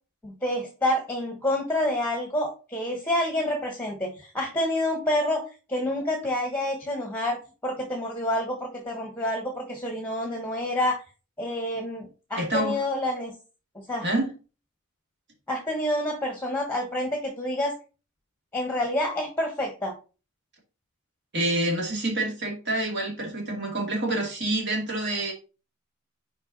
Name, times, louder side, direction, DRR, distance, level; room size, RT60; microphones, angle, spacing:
voice 1, 0.2-5.4 5.7-11.0 11.4-13.3 13.9-14.0 15.5-17.7 18.5-19.9, left 1 dB, 10° left, 2 dB, 1.2 m, -28 dB
voice 2, 12.4-12.8 14.0-14.3 21.3-25.3, right 1 dB, 55° right, 0 dB, 2.4 m, -27 dB
5.7 x 4.7 x 3.9 m, 0.34 s
head